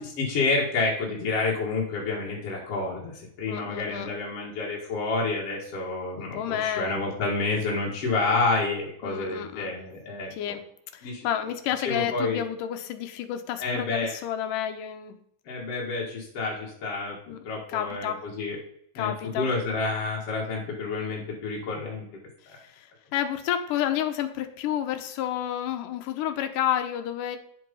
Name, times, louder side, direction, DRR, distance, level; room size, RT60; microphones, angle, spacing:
voice 1, 0.0-10.6 11.0-11.3 11.8-12.4 13.6-14.1 15.5-17.2 17.4-18.6 18.9-22.1 22.5-22.6, left 3 dB, 50° left, -3 dB, 2.8 m, -29 dB
voice 2, 3.5-4.1 6.2-7.0 9.0-9.7 10.3-10.6 10.9-15.2 17.3-17.4 17.7-18.2 19.0-19.5 22.4-27.4, left 10 dB, 90° left, 7 dB, 2.5 m, -30 dB
10.0 x 7.7 x 5.4 m, 0.68 s
omnidirectional pair, 3.6 m